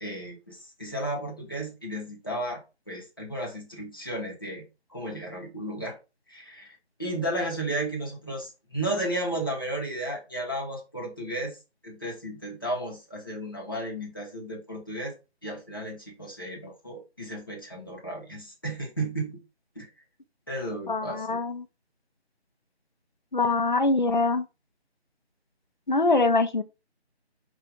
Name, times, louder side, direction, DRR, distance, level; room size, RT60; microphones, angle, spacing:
voice 1, 0.0-2.6 2.9-4.6 4.9-6.0 6.3-11.6 11.8-15.1 15.4-19.4 19.8-19.9 20.5-21.4, right 1 dB, 20° left, 0.9 m, -34 dB
voice 2, 20.9-21.6 23.3-24.4 25.9-26.6, left 3 dB, 45° left, 0.6 m, -23 dB
5.5 x 2.5 x 3.8 m
figure-of-eight pair, 170°, 34 cm